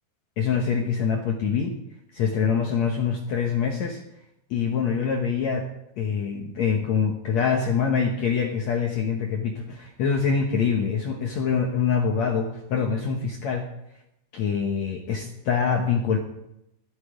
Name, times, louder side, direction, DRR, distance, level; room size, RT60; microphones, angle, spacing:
voice 1, 0.4-1.7 2.1-4.0 4.5-5.7 6.0-13.7 14.3-16.2, left 6 dB, 75° left, 2 dB, 1.6 m, -25 dB
13.0 x 12.5 x 4.9 m, 0.83 s
omnidirectional pair, 4.6 m